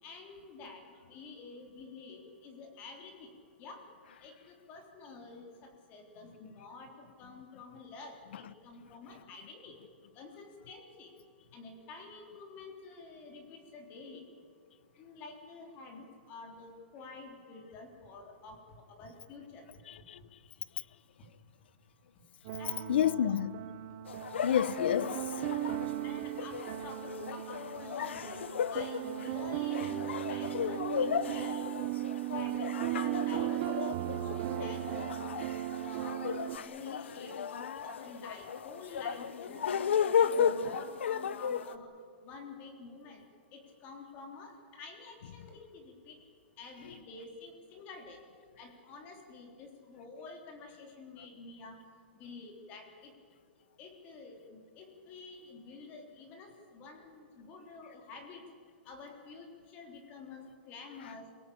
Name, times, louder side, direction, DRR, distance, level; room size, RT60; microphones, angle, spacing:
voice 1, 0.0-3.3 3.6-3.8 4.2-9.8 10.2-11.1 11.5-14.2 15.0-19.7 22.6-23.3 26.0-28.5 28.7-31.7 32.3-34.8 35.1-35.4 35.8-41.9 42.2-43.2 43.5-46.2 46.6-48.2 48.6-51.8 52.2-53.1 53.8-58.4 58.9-61.2, left 3 dB, 25° left, 3.5 m, -49 dB
voice 2, 19.9-20.2 22.9-23.6 24.4-25.6, left 10 dB, 65° left, 0.9 m, -30 dB
sound 1, 22.4-36.6, right 15 dB, 35° right, 0.9 m, -37 dB
sound 2, 24.1-41.8, left 7 dB, 90° left, 1.0 m, -35 dB
28.5 x 17.0 x 8.6 m
hypercardioid pair, 170°, 6 cm